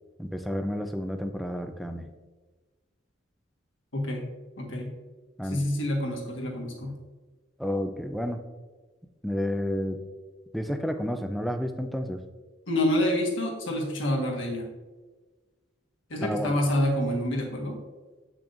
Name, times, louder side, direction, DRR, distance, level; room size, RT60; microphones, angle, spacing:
voice 1, 0.2-2.1 5.4-5.6 7.6-8.4 9.2-10.0 10.5-12.2 16.2-16.5, equal, ahead, 6 dB, 0.4 m, -30 dB
voice 2, 3.9-4.3 4.6-4.9 5.4-6.9 12.7-14.7 16.1-17.8, left 1 dB, 70° left, 0 dB, 1.5 m, -27 dB
8.4 x 6.0 x 2.5 m, 1.3 s
head